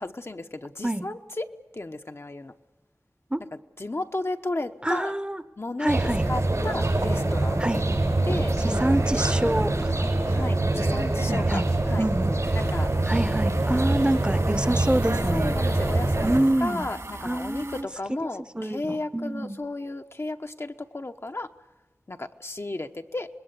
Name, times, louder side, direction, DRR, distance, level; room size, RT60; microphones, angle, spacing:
voice 1, 0.0-1.4 1.7-2.5 3.8-5.1 5.6-7.6 8.2-9.0 10.3-12.1 12.5-12.9 15.3-16.3 16.6-21.5 22.1-23.3, left 2 dB, 55° left, 6 dB, 1.0 m, -34 dB
voice 2, 4.8-5.4 5.8-6.3 7.6-7.8 8.6-10.1 11.3-11.7 12.0-12.4 13.1-15.6 16.2-16.9 17.2-17.9 18.5-19.6, right 1 dB, 20° right, 12 dB, 0.9 m, -26 dB
sound 1, 5.9-16.4, right 2 dB, 85° right, 5.3 m, -24 dB
sound 2, 12.4-17.8, right 2 dB, 70° right, 2.8 m, -41 dB
26.0 x 20.5 x 8.3 m, 1.1 s
wide cardioid pair, 40°, 5 cm